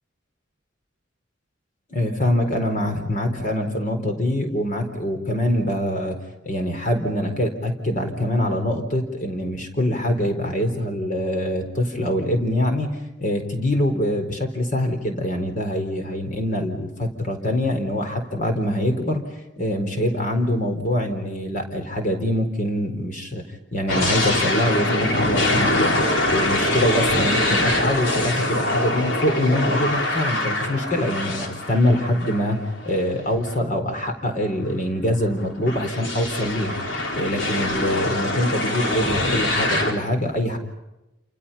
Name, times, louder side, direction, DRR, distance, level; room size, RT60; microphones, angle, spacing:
voice 1, 1.9-6.2 6.4-12.9 13.2-19.2 19.6-23.4 23.7-26.0 26.3-32.6 32.8-36.8 37.2-40.6, left 1 dB, 45° left, 5 dB, 4.3 m, -24 dB
sound 1, 23.9-32.9 33.5-33.6 35.0-39.9, left 1 dB, 80° left, 4.0 m, -24 dB
29.0 x 28.5 x 5.7 m, 0.94 s
head